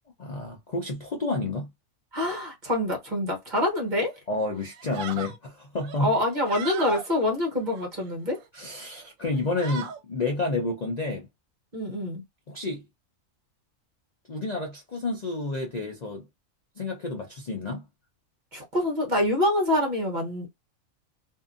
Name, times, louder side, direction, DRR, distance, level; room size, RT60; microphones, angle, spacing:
voice 1, 0.2-1.7 4.3-6.1 8.5-11.3 12.5-12.8 14.3-16.3 16.8-17.9, left 3 dB, 45° left, 0.5 m, -30 dB
voice 2, 2.1-4.1 6.0-8.4 11.7-12.2 18.5-20.5, left 1 dB, 40° right, 1.0 m, -26 dB
sound 1, 3.9-4.2 4.6-5.4 5.8-7.1 7.6-8.5 8.9-9.1 9.4-10.0, right 6 dB, 80° right, 1.0 m, -37 dB
2.7 x 2.4 x 2.4 m
omnidirectional pair, 1.4 m